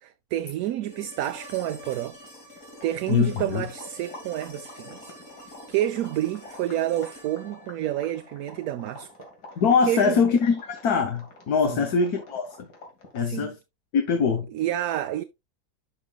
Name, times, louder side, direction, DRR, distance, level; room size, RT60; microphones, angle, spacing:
voice 1, 0.0-2.2 2.8-5.1 5.7-9.3 9.9-10.2 11.7-11.9 13.2-13.5 14.5-15.2, right 13 dB, 70° right, 1.0 m, -29 dB
sound 1, 0.9-8.9 11.0-11.1, left 1 dB, 45° left, 3.9 m, -47 dB
sound 2, 1.7-13.4, left 2 dB, 90° left, 2.7 m, -47 dB
voice 2, 3.1-3.6 9.6-12.7 13.1-13.5 13.9-14.5, left 5 dB, 70° left, 1.6 m, -23 dB
11.0 x 5.4 x 2.3 m
omnidirectional pair, 1.7 m